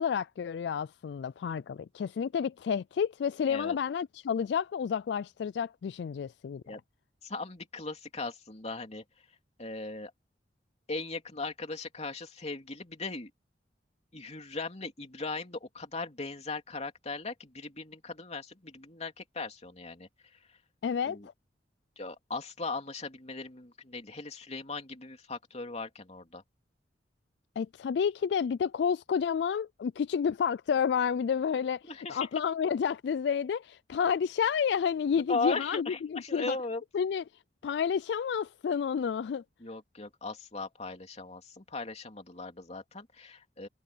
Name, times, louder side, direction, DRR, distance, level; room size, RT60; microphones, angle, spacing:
voice 1, 0.0-6.8 20.8-21.2 27.6-31.8 32.1-36.6 36.9-37.2 37.6-39.4, left 7 dB, 70° left, 0.3 m, -30 dB
voice 2, 7.2-9.0 9.6-10.1 10.9-13.3 14.1-20.6 21.0-21.3 22.0-26.4 31.9-32.3 35.3-36.8 39.6-43.7, left 3 dB, 40° left, 2.9 m, -38 dB
head